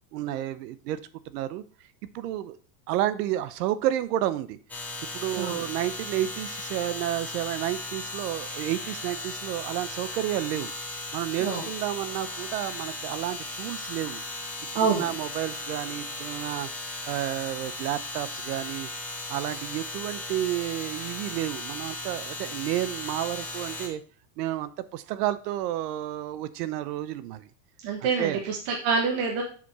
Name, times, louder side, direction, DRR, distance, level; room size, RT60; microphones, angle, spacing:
voice 1, 0.1-1.0 1.3-1.6 2.1-2.6 2.9-4.6 5.1-10.7 11.1-14.2 14.8-16.7 17.1-18.9 19.3-24.0 24.4-27.5 28.0-28.4, right 13 dB, 75° right, 15 dB, 0.8 m, -31 dB
sound 1, 4.7-23.9, left 2 dB, 5° left, 0.3 m, -36 dB
voice 2, 5.3-5.6 11.4-11.6 14.7-15.1 27.8-29.4, right 5 dB, 45° right, 0 dB, 1.5 m, -26 dB
7.0 x 5.0 x 4.7 m, 0.41 s
supercardioid pair, 160°, 48 cm